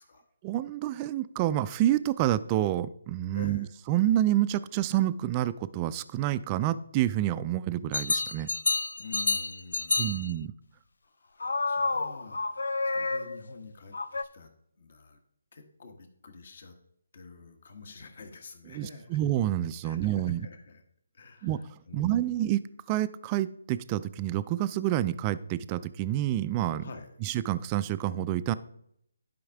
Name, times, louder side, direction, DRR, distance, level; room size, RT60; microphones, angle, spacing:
voice 1, 0.4-8.5 10.0-10.5 18.7-20.5 21.4-21.6 21.9-22.6 22.9-26.9 27.2-28.5, right 13 dB, 25° right, 15 dB, 0.3 m, -28 dB
voice 2, 3.3-3.7 9.0-10.2 11.0-14.5 14.8-15.2 15.5-16.7 17.1-19.2 19.8-20.8 21.1-22.3 26.8-27.1, left 3 dB, 55° left, 6 dB, 1.3 m, -48 dB
sound 1, 7.9-10.3 11.4-13.5 13.9-14.2, left 3 dB, 70° left, 0.4 m, -29 dB
11.5 x 5.3 x 3.5 m, 0.72 s
figure-of-eight pair, 150°, 0 cm